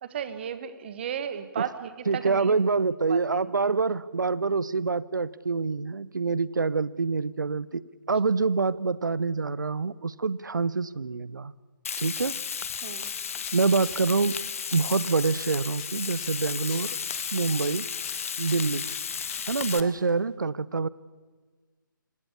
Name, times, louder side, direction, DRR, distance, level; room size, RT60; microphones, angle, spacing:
voice 1, 0.0-2.6 3.1-3.4 12.8-13.1 19.7-19.9, right 8 dB, 30° right, 12 dB, 1.5 m, -35 dB
voice 2, 2.1-7.8 8.1-11.5 12.0-12.4 13.5-14.4 14.7-17.0 17.3-17.9 18.4-18.9 19.5-20.9, right 4 dB, 60° right, 20 dB, 0.8 m, -26 dB
Frying (food), 11.8-19.8, left 7 dB, 40° left, 0.9 m, -34 dB
sound 1, 13.0-20.2, left 8 dB, 20° left, 2.4 m, -49 dB
26.5 x 16.0 x 8.6 m, 1.4 s
figure-of-eight pair, 145°, 11 cm